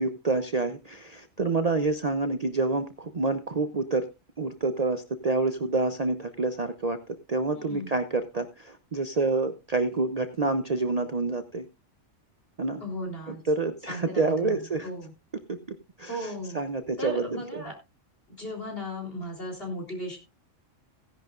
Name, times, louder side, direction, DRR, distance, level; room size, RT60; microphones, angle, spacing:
voice 1, 0.0-4.1 4.4-7.0 7.3-11.6 12.6-12.8 13.3-14.9 15.5-15.6 16.0-17.6, right 3 dB, 40° right, 8 dB, 0.7 m, -28 dB
voice 2, 7.5-8.0 12.8-13.4 13.9-15.1 16.1-16.6 17.0-17.7 18.3-20.2, equal, 50° left, 1 dB, 3.9 m, -36 dB
16.5 x 10.5 x 2.5 m, 0.26 s
omnidirectional pair, 1.3 m